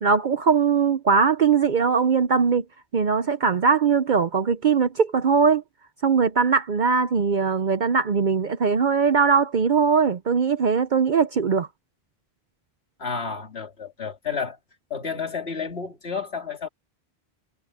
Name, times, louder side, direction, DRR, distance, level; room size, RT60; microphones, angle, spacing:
voice 1, 0.0-2.6 2.9-5.6 6.0-11.7, right 5 dB, 50° right, 0.8 m, -20 dB
voice 2, 13.0-14.6 14.9-16.7, left 5 dB, 75° left, 2.8 m, -31 dB
omnidirectional pair, 1.1 m